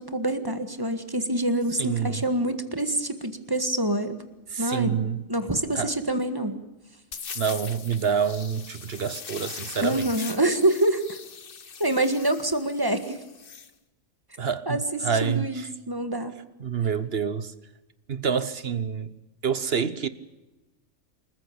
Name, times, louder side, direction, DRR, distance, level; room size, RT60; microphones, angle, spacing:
voice 1, 0.0-4.2 4.6-6.6 9.8-11.2 11.8-13.2 14.7-16.4, right 1 dB, 15° right, 1.7 m, -26 dB
voice 2, 1.8-2.3 4.5-5.2 5.7-5.9 7.3-10.3 14.4-15.7 16.6-17.5 18.1-19.1 19.4-20.1, right 7 dB, 50° right, 1.1 m, -27 dB
sound 1, 7.1-13.7, left 6 dB, 45° left, 1.2 m, -41 dB
27.0 x 15.0 x 8.6 m
omnidirectional pair, 1.4 m